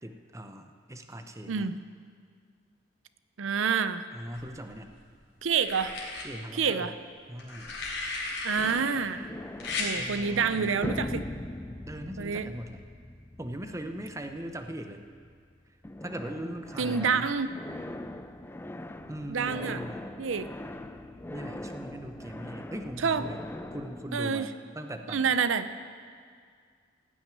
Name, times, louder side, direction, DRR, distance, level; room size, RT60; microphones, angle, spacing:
voice 1, 0.0-1.7 4.1-4.9 6.2-7.0 7.3-7.8 9.9-10.8 11.1-11.4 11.9-12.8 13.4-15.1 16.0-17.3 19.1-20.1 21.3-23.5 23.7-25.4, right 1 dB, 15° right, 6 dB, 0.8 m, -40 dB
voice 2, 3.4-4.1 5.4-6.0 6.6-6.9 8.4-9.2 9.8-11.2 12.2-12.5 16.8-17.5 19.3-19.8 20.2-20.5 23.0-23.2 24.1-24.5 25.1-25.7, right 6 dB, 80° right, 12 dB, 0.6 m, -27 dB
sound 1, 4.3-5.0 5.6-6.2 7.4-8.7 9.6-9.9 11.3-11.5, left 3 dB, 75° left, 3.5 m, -35 dB
boom crash, 8.6-15.5 15.8-24.2, left 1 dB, 10° left, 0.4 m, -41 dB
16.5 x 6.3 x 9.3 m, 2.1 s
head